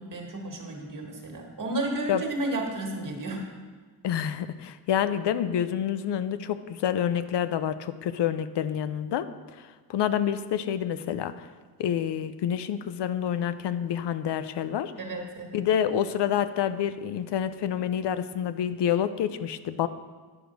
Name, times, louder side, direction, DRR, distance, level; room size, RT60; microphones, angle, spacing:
voice 1, 0.0-3.4 15.0-15.6, right 2 dB, 50° right, 2 dB, 1.5 m, -32 dB
voice 2, 4.0-9.3 9.6-11.5 11.8-14.9 15.5-19.9, left 9 dB, 85° left, 12 dB, 0.6 m, -28 dB
10.5 x 4.9 x 5.2 m, 1.4 s
cardioid pair, 95°, 40 cm